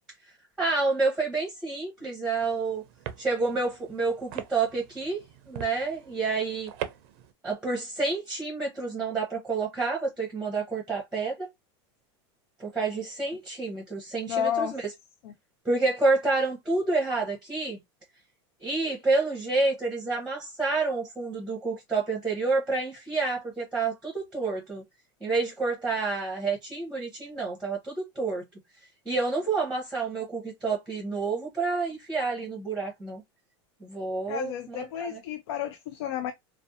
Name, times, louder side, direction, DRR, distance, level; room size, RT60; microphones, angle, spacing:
voice 1, 0.6-2.8 3.2-6.7 7.4-11.5 12.6-14.9 15.6-17.8 18.6-24.8 25.2-28.4 29.1-33.2 33.8-35.2, right 3 dB, 5° right, 0.8 m, -29 dB
sound 1, 2.3-7.3, right 11 dB, 65° right, 0.5 m, -42 dB
voice 2, 14.3-14.8 15.2-15.3 34.3-36.3, left 9 dB, 70° left, 0.4 m, -31 dB
2.6 x 2.1 x 2.5 m
supercardioid pair, 135°, 14 cm